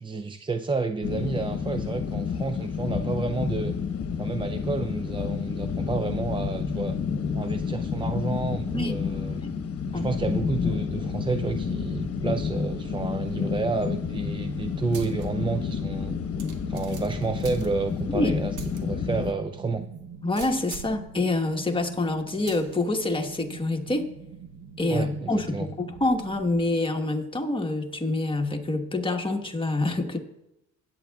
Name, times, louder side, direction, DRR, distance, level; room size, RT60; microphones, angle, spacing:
voice 1, 0.0-3.7 4.2-7.0 7.3-9.4 9.9-16.2 16.7-18.6 18.8-19.8 24.9-25.7, right 4 dB, 15° right, 8 dB, 0.4 m, -30 dB
sound 1, 1.0-19.3, left 6 dB, 50° left, 1.0 m, -30 dB
sound 2, 10.8-26.6, right 6 dB, 55° right, 0.8 m, -44 dB
sound 3, 14.9-15.3 15.7-15.8 16.4-18.1 18.5-18.8 19.2-19.3 20.3-21.0 22.5-22.8, right 4 dB, 85° right, 1.6 m, -41 dB
voice 2, 20.2-24.1 24.8-30.2, left 2 dB, 15° left, 4 dB, 1.3 m, -26 dB
16.5 x 8.9 x 2.4 m, 0.86 s
cardioid pair, 90°, 30 cm